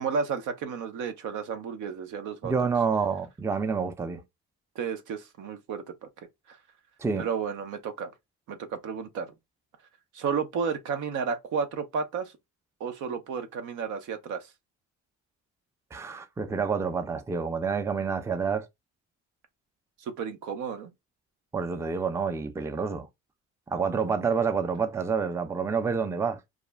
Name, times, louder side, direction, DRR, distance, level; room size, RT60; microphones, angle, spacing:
voice 1, 0.0-2.5 4.8-6.1 6.5-6.6 7.2-8.1 8.5-9.3 10.1-12.3 12.8-14.5 20.0-20.9, right 6 dB, 85° right, 0.6 m, -32 dB
voice 2, 2.4-4.2 7.0-7.3 15.9-18.7 21.5-23.1 23.7-26.4, right 5 dB, 10° right, 0.3 m, -28 dB
2.4 x 2.0 x 3.2 m
cardioid pair, 90°, 30 cm